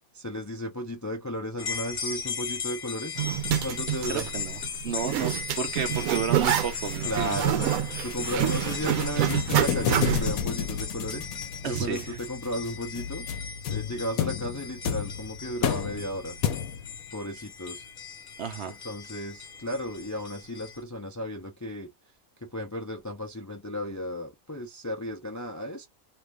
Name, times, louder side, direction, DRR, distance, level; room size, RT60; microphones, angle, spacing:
voice 1, 0.1-3.2 3.6-4.3 7.0-7.7 8.0-11.3 11.6-13.3 13.7-16.4 17.1-17.8 18.7-21.9 22.5-25.9, equal, 20° left, 0.4 m, -34 dB
sound 1, 1.6-20.8, left 6 dB, 45° left, 1.1 m, -38 dB
Zipper (clothing), 3.2-10.4, right 10 dB, 80° right, 1.1 m, -27 dB
voice 2, 4.1-7.4 11.6-12.2 18.4-18.8, right 7 dB, 65° right, 0.8 m, -32 dB
sound 2, 8.1-17.0, left 8 dB, 80° left, 1.1 m, -32 dB
2.8 x 2.5 x 3.2 m
omnidirectional pair, 1.5 m